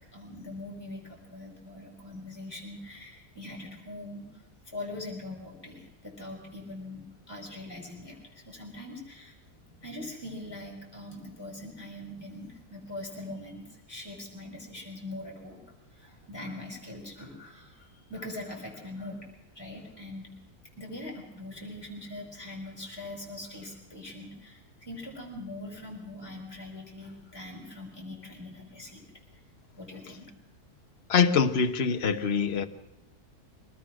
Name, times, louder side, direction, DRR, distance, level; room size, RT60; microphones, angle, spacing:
voice 1, 0.1-4.2 4.6-9.3 9.8-15.6 15.9-19.2 19.5-20.3 20.8-29.0 29.8-30.2, left 2 dB, 15° left, 0 dB, 5.7 m, -42 dB
voice 2, 31.1-32.7, left 6 dB, 45° left, 8 dB, 1.3 m, -24 dB
23.5 x 19.5 x 6.3 m, 0.95 s
omnidirectional pair, 1.6 m